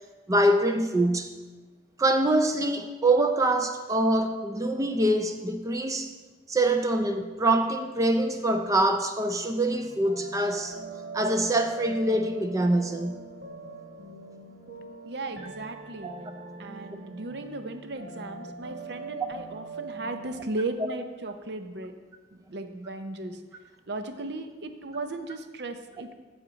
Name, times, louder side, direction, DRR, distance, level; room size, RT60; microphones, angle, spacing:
voice 1, 0.3-1.3 2.0-6.1 6.5-10.8 11.1-13.2 16.0-16.1, right 1 dB, 20° right, 6 dB, 0.4 m, -24 dB
sound 1, 9.8-20.3, right 4 dB, 80° right, 1.1 m, -42 dB
voice 2, 15.0-16.1 16.6-21.9 22.5-23.4 23.9-26.1, right 2 dB, 65° right, 8 dB, 0.7 m, -36 dB
9.3 x 7.2 x 4.0 m, 1.3 s
head